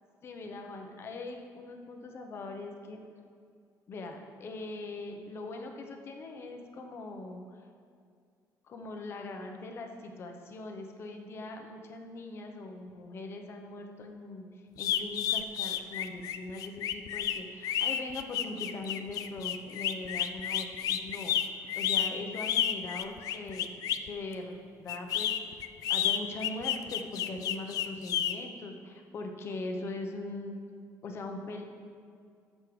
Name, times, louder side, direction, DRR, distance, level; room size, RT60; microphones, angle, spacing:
voice 1, 0.2-3.0 3.9-7.4 8.7-14.5 14.8-23.7 24.0-25.6 25.9-30.6 31.0-31.6, left 2 dB, 40° left, 3 dB, 0.9 m, -41 dB
sound 1, 14.8-24.1 24.9-28.3, left 10 dB, 65° left, 0.4 m, -31 dB
14.5 x 6.5 x 3.3 m, 2.2 s
cardioid pair, 170°, 7 cm